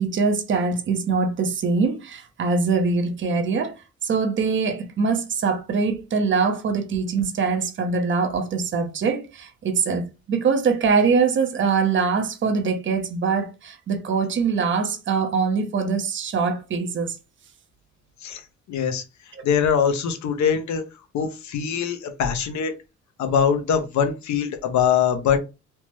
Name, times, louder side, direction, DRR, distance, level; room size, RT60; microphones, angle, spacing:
voice 1, 0.0-17.2 19.3-19.4, right 5 dB, 40° right, 0.7 m, -23 dB
voice 2, 18.7-19.0 19.4-20.8 21.1-22.7 23.2-25.4, left 7 dB, 70° left, 0.7 m, -22 dB
3.3 x 2.0 x 3.0 m
cardioid pair, 90°, 30 cm